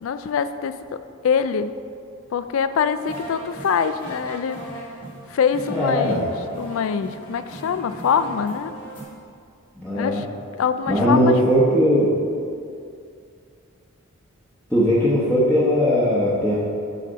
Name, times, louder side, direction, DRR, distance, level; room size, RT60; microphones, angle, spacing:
voice 1, 0.0-1.7 2.3-4.6 5.3-8.7 9.9-10.3 10.5-11.4, left 6 dB, 70° left, 12 dB, 0.3 m, -24 dB
sound 1, 2.9-9.0, right 1 dB, 25° left, 1.7 m, -39 dB
voice 2, 5.7-6.2 9.8-10.2 10.9-12.1 14.7-16.6, equal, 5° left, -9 dB, 0.9 m, -19 dB
8.0 x 4.2 x 5.1 m, 2.4 s
head